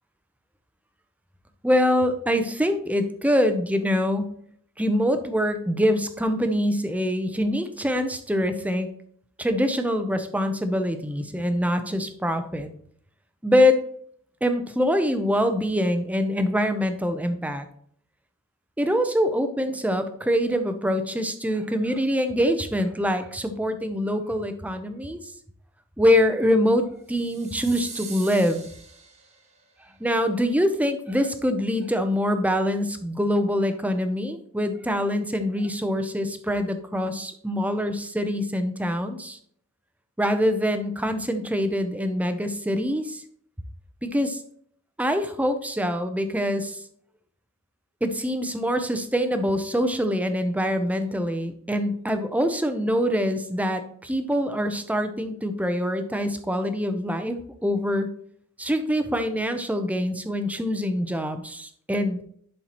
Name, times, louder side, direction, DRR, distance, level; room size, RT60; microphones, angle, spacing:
voice 1, 1.6-4.3 4.8-8.9 9.4-12.7 13.4-13.8 14.4-17.7 18.8-25.2 26.0-28.6 30.0-39.4 40.2-43.2 44.0-44.4 45.0-46.8 48.0-57.4 57.6-58.1 58.6-62.2, equal, 5° right, 8 dB, 0.6 m, -24 dB
sound 1, 27.1-29.6, right 5 dB, 35° right, 1.4 m, -42 dB
11.0 x 4.4 x 2.9 m, 0.62 s
head